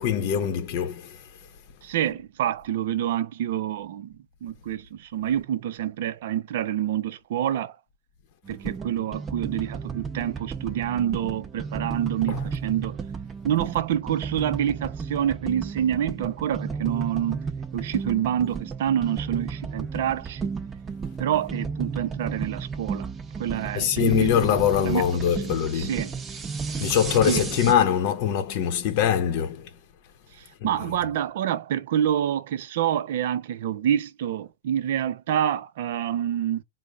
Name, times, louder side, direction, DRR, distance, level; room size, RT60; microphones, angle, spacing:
voice 1, 0.0-1.5 12.3-12.4 23.7-26.0 26.7-29.7 30.6-30.7, left 9 dB, 50° left, 0.7 m, -23 dB
voice 2, 1.8-4.1 4.4-7.8 8.5-13.0 13.4-17.4 17.7-20.5 21.2-23.1 23.4-24.3 24.8-25.0 25.7-26.1 27.3-27.4 30.4-36.6, right 10 dB, 65° right, 0.4 m, -27 dB
sound 1, 8.5-27.7, right 5 dB, 20° right, 0.6 m, -33 dB
3.8 x 2.0 x 3.4 m
hypercardioid pair, 115°, 0 cm